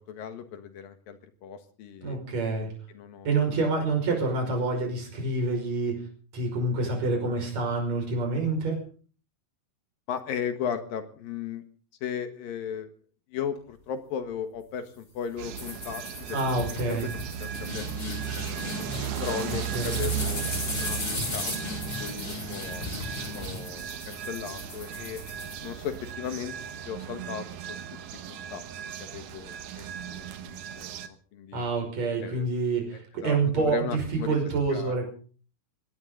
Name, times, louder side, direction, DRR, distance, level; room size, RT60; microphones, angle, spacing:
voice 1, 0.1-2.2 2.6-3.3 10.1-11.6 12.0-12.9 13.3-17.1 17.4-18.9 19.2-21.0 21.3-21.6 22.0-22.9 23.3-25.2 25.6-27.8 28.3-28.6 29.0-31.6 32.2-32.5 32.9-34.4 34.7-34.9, left 8 dB, 75° left, 8 dB, 3.3 m, -36 dB
voice 2, 2.0-2.7 3.2-6.0 6.3-8.8 16.3-17.1 19.7-20.0 31.5-35.1, right 3 dB, 50° right, 2 dB, 6.6 m, -27 dB
sound 1, 15.4-31.1, right 9 dB, 65° right, 2.6 m, -36 dB
sound 2, 15.6-26.1, left 2 dB, 30° left, 6.1 m, -36 dB
20.5 x 18.0 x 3.9 m, 0.41 s
omnidirectional pair, 4.1 m